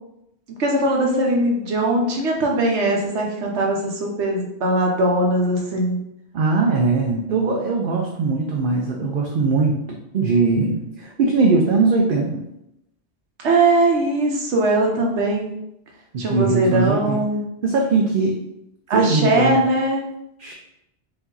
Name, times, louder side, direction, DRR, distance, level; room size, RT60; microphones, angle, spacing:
voice 1, 0.6-6.0 13.4-15.5 16.2-17.4 18.9-20.0, right 1 dB, 85° right, 0 dB, 1.2 m, -20 dB
voice 2, 6.3-12.4 16.1-17.2 17.6-18.4 18.9-19.6 20.4-20.5, right 4 dB, 60° right, 1 dB, 0.7 m, -20 dB
4.8 x 2.6 x 3.9 m, 0.84 s
omnidirectional pair, 1.1 m